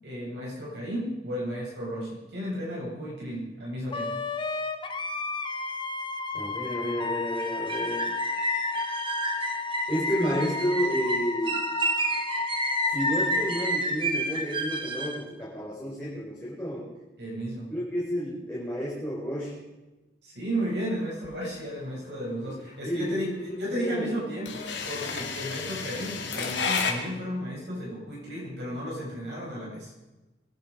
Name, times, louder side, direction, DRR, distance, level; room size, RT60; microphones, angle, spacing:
voice 1, 0.0-4.1 17.2-17.7 20.2-29.9, equal, 70° right, -4 dB, 7.8 m, -33 dB
Wind instrument woodwind instrument, 3.9-13.8, left 3 dB, 25° left, 1.1 m, -33 dB
voice 2, 6.3-8.1 9.9-11.6 12.9-16.9 17.7-19.6 22.4-22.5 22.8-24.1, equal, 10° left, -8 dB, 4.8 m, -31 dB
sound 1, 7.4-15.2, right 1 dB, 30° right, 1.5 m, -30 dB
sound 2, 20.6-26.9, left 5 dB, 85° left, 2.6 m, -32 dB
22.5 x 11.5 x 5.1 m, 1.1 s
head